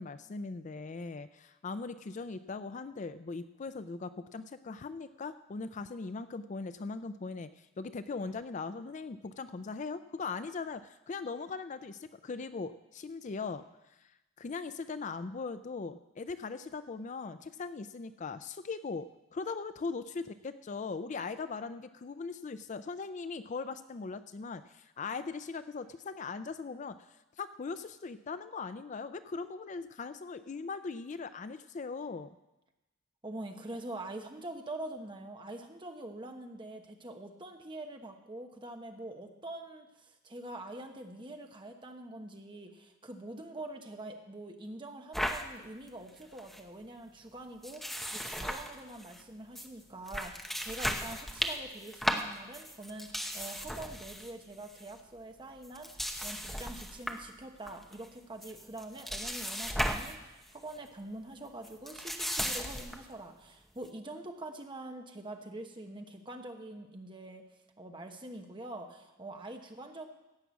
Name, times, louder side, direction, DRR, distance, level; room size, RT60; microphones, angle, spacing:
voice 1, 0.0-13.6 14.0-19.1 19.3-27.0 27.4-32.4, left 4 dB, 35° left, 12 dB, 0.4 m, -40 dB
voice 2, 33.2-47.8 48.1-67.4 67.8-70.1, right 2 dB, 25° right, 4 dB, 1.2 m, -45 dB
sound 1, 45.1-45.4 45.9-46.0 46.2-46.6 47.6-49.2 49.5-49.7 50.1-54.3 54.6-54.9 55.6-57.3 57.7-58.1 58.4-60.2 60.5-60.7 61.6-63.0, equal, ahead, 0.8 m, -36 dB
16.0 x 6.0 x 8.2 m, 0.98 s
head